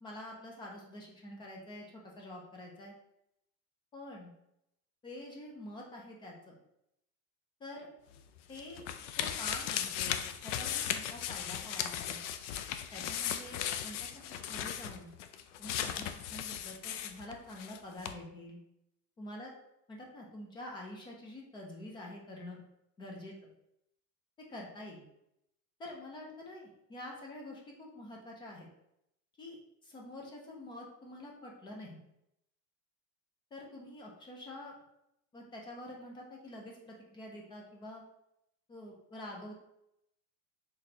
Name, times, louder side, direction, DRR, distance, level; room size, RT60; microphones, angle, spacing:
voice 1, 0.0-2.9 3.9-4.3 5.0-6.6 7.6-7.9 8.5-8.8 9.2-12.2 12.9-14.2 14.5-15.1 15.6-18.6 19.2-19.5 19.9-22.6 23.0-23.5 24.5-25.0 25.8-28.7 29.4-32.0 33.5-34.7 35.3-38.0 38.7-39.5, left 1 dB, 15° left, -1 dB, 0.4 m, -47 dB
sound 1, 8.1-17.8 18.0-18.1, left 9 dB, 75° left, 0.5 m, -37 dB
4.1 x 3.2 x 2.7 m, 0.80 s
cardioid pair, 165°, 37 cm